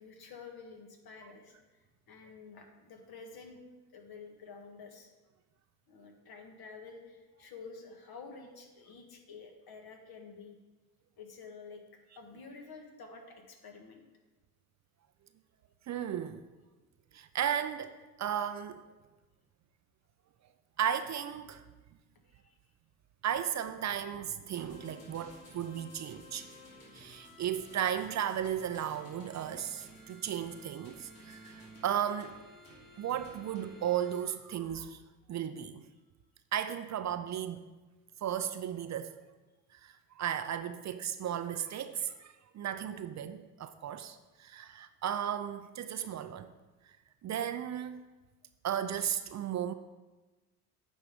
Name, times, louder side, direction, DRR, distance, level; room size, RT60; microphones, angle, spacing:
voice 1, 0.0-1.8 2.1-3.6 3.9-5.1 5.9-10.6 11.2-11.8 12.2-14.0 22.3-22.6 27.0-27.3, left 4 dB, 55° left, 1.6 m, -50 dB
voice 2, 15.9-16.4 17.1-18.8 20.8-21.6 23.2-26.5 26.9-32.4 33.0-35.0 35.3-35.8 36.5-37.7 38.2-39.2 39.7-46.5 46.8-47.0 47.2-48.0 48.6-49.7, right 9 dB, 40° right, 0.5 m, -35 dB
sound 1, 24.5-34.2, left 1 dB, 75° left, 2.8 m, -54 dB
8.6 x 5.4 x 5.1 m
hypercardioid pair, 60°, 45 cm